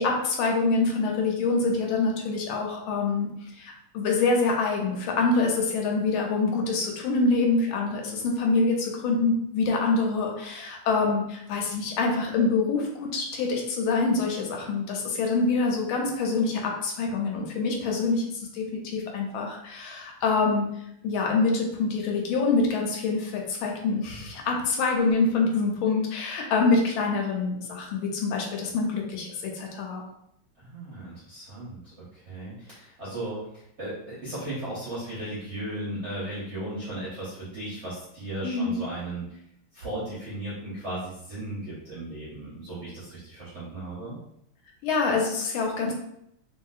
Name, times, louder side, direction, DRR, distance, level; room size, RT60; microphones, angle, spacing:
voice 1, 0.0-3.3 3.6-20.7 21.0-30.0 38.4-38.8 44.8-45.9, left 3 dB, 80° left, 1 dB, 1.4 m, -25 dB
voice 2, 30.6-39.4 39.7-44.2, right 1 dB, 55° right, -9 dB, 0.7 m, -36 dB
3.1 x 2.8 x 2.3 m, 0.77 s
omnidirectional pair, 2.3 m